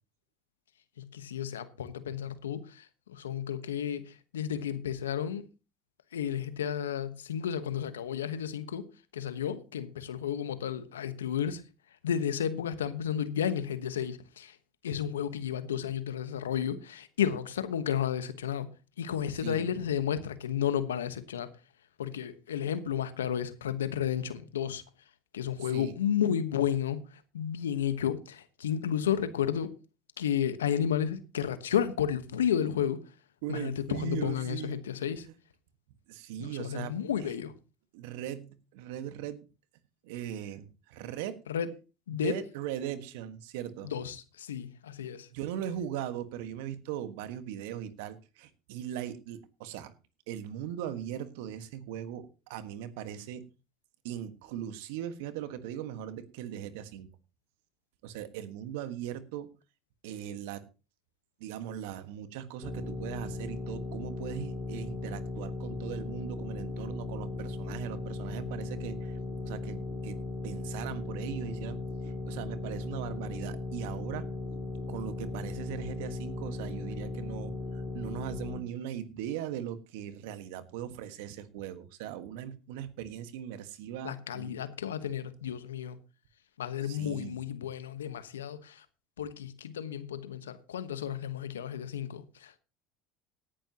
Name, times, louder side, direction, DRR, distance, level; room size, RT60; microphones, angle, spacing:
voice 1, 1.0-5.5 6.1-8.9 9.1-11.6 12.0-14.6 14.8-21.5 22.0-24.8 25.3-29.7 30.2-33.0 33.5-35.3 36.4-37.5 41.5-41.7 42.1-42.3 43.8-45.3 84.0-86.0 86.6-88.8 89.2-92.6, left 9 dB, 90° left, 1.1 m, -32 dB
voice 2, 25.6-25.9 33.4-34.8 36.1-37.3 37.9-39.5 40.0-41.4 42.1-43.9 45.3-49.9 50.3-53.5 54.0-57.1 58.0-59.5 60.0-60.7 61.4-69.1 69.4-74.3 74.9-84.5 86.8-87.4, right 10 dB, 75° right, 1.5 m, -39 dB
sound 1, 62.6-78.6, left 2 dB, 35° left, 4.2 m, -37 dB
18.0 x 10.0 x 2.9 m
hypercardioid pair, 75°, 0 cm